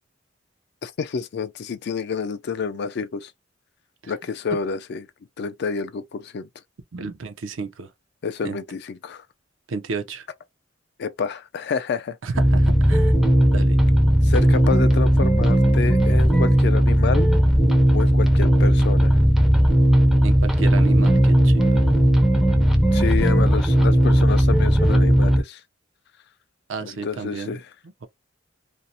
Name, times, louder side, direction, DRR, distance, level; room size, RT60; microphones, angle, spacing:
voice 1, 0.8-3.3 4.1-5.1 5.4-6.5 8.2-9.2 11.0-12.2 14.2-17.3 17.9-19.2 22.9-25.6 26.8-27.6, left 5 dB, 60° left, 0.4 m, -28 dB
voice 2, 6.9-7.9 8.4-8.6 9.7-10.3 12.2-13.1 13.5-13.8 20.2-21.8 26.7-27.6, right 4 dB, 80° right, 0.5 m, -32 dB
sound 1, 12.3-25.4, equal, ahead, 0.4 m, -17 dB
2.5 x 2.0 x 2.6 m
head